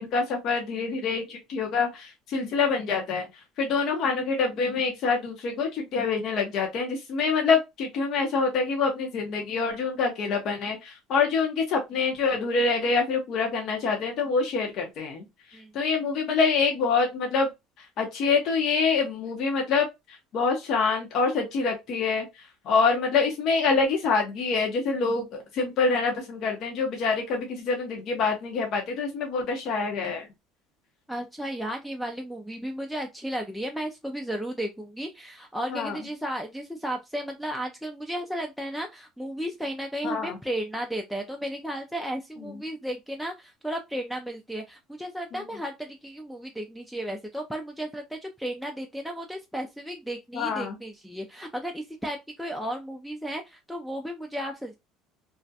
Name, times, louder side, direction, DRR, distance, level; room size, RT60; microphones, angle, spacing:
voice 1, 0.0-15.3 15.7-17.5 17.8-25.3 25.5-30.3 35.7-36.0 40.0-40.4 42.4-42.6 45.3-45.4 50.3-50.8, left 4 dB, 55° left, 0.7 m, -26 dB
voice 2, 31.1-54.7, equal, ahead, 0.3 m, -34 dB
2.3 x 2.1 x 2.6 m
cardioid pair, 125°, 0 cm